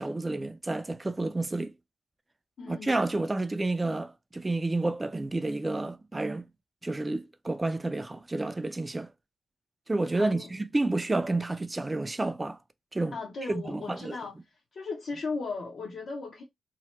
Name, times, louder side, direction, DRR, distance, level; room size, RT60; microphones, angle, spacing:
voice 1, 0.0-1.7 2.7-6.4 6.8-9.1 9.9-12.6 12.9-13.2 13.7-14.2, right 2 dB, 15° right, 0.3 m, -30 dB
voice 2, 2.6-3.0 10.1-10.5 13.1-14.4 14.7-16.4, left 4 dB, 60° left, 0.7 m, -36 dB
2.8 x 2.1 x 3.0 m
wide cardioid pair, 130°, 0 cm